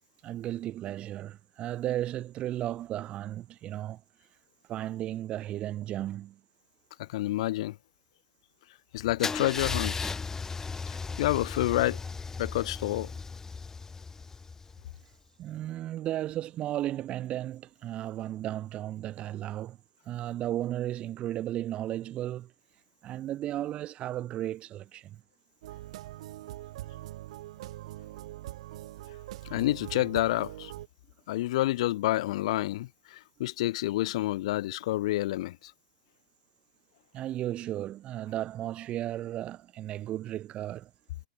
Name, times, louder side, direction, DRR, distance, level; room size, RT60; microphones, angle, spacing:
voice 1, 0.2-4.0 4.7-6.4 15.4-19.8 20.1-22.5 23.0-25.2 37.1-40.9, right 13 dB, 35° right, 0.6 m, -34 dB
voice 2, 7.0-7.8 8.9-10.1 11.2-12.0 12.4-13.1 29.4-30.7 31.3-35.7, left 16 dB, 65° left, 0.7 m, -29 dB
Car / Engine starting / Idling, 9.2-15.0, left 4 dB, 10° left, 0.5 m, -36 dB
sound 1, 25.6-30.9, right 15 dB, 65° right, 1.6 m, -42 dB
hypercardioid pair, 115°, 4 cm